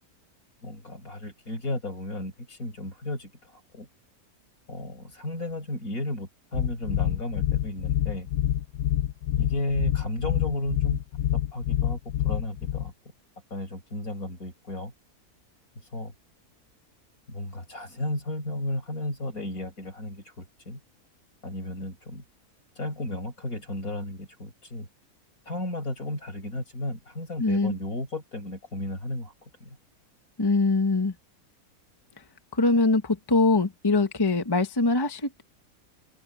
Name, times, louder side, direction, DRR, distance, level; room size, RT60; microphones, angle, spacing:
voice 1, 0.6-3.9 4.7-8.3 9.4-11.0 11.3-12.9 13.5-14.9 15.9-16.1 17.3-20.8 21.4-22.2 22.8-24.9 25.5-29.8, left 1 dB, 70° left, 7.0 m, -34 dB
sound 1, 6.5-12.9, left 12 dB, 85° left, 1.2 m, -27 dB
voice 2, 27.4-27.8 30.4-31.1 32.5-35.4, left 3 dB, 15° left, 1.1 m, -23 dB
open air
omnidirectional pair, 1.6 m